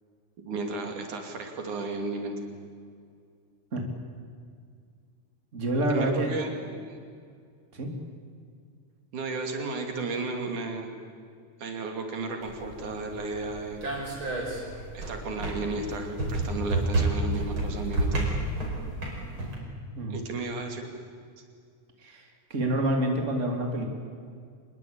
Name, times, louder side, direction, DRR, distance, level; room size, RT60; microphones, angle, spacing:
voice 1, 0.5-2.4 5.8-7.0 9.1-10.9 11.6-13.8 14.9-18.3 20.1-20.9, right 3 dB, 85° right, 3 dB, 4.2 m, -33 dB
voice 2, 5.5-6.3 7.7-7.9 20.0-20.2 22.0-23.9, right 1 dB, 25° right, 2 dB, 3.2 m, -28 dB
sound 1, 12.4-19.5, right 2 dB, 40° right, 6.0 m, -30 dB
25.0 x 21.5 x 8.8 m, 2.2 s
omnidirectional pair, 3.4 m